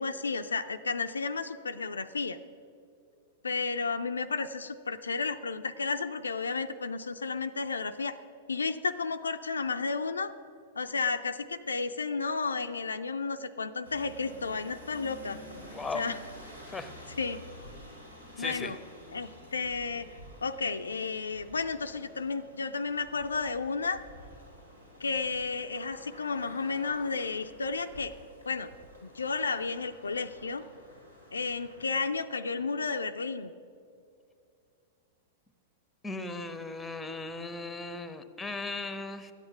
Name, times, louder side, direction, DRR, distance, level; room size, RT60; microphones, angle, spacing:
voice 1, 0.0-2.4 3.4-8.2 8.5-10.3 10.8-15.4 15.9-16.2 17.2-17.4 18.4-18.8 19.1-24.0 25.0-28.1 28.5-28.7 29.0-30.6 31.3-33.5, left 4 dB, 75° left, 8 dB, 0.4 m, -32 dB
sound 1, 13.8-32.0, equal, 80° right, 3.0 m, -50 dB
voice 2, 15.7-16.0 16.7-16.9 18.4-18.7 36.0-39.3, left 3 dB, 10° left, 11 dB, 0.8 m, -37 dB
13.0 x 9.0 x 6.0 m, 2.5 s
figure-of-eight pair, 100°, 0 cm